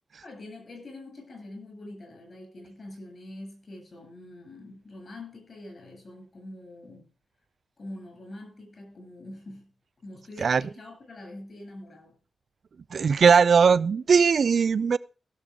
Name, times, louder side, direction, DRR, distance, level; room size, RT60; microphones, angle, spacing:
voice 1, 0.2-7.1 7.8-9.7 10.0-12.1, left 1 dB, 55° left, 7.7 m, -44 dB
voice 2, 12.9-15.0, right 6 dB, 65° right, 0.4 m, -19 dB
16.5 x 6.7 x 5.0 m
cardioid pair, 75°, 0 cm